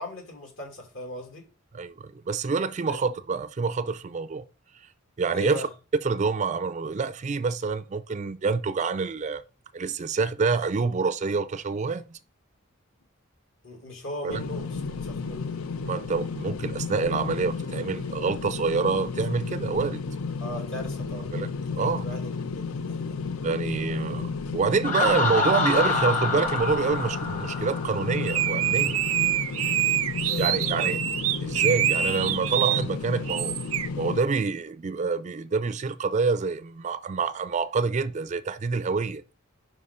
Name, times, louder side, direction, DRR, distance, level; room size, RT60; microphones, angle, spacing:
voice 1, 0.0-1.4 2.9-3.0 5.3-5.7 13.6-15.5 20.4-21.3 21.7-23.2 30.2-30.9, left 1 dB, 65° left, 2.4 m, -39 dB
voice 2, 1.7-4.4 5.2-5.7 6.0-9.4 9.7-12.2 14.2-14.4 15.8-20.0 21.3-21.5 21.8-22.1 23.4-29.0 30.4-31.0 31.4-33.6 34.0-39.2, right 4 dB, 35° right, 0.4 m, -27 dB
sound 1, 14.3-34.2, left 4 dB, 85° left, 0.6 m, -33 dB
Laughter, 24.8-28.5, left 3 dB, 40° left, 1.6 m, -27 dB
sound 2, 28.3-32.8 33.3-33.9, right 11 dB, 90° right, 0.6 m, -26 dB
5.5 x 4.8 x 4.9 m
head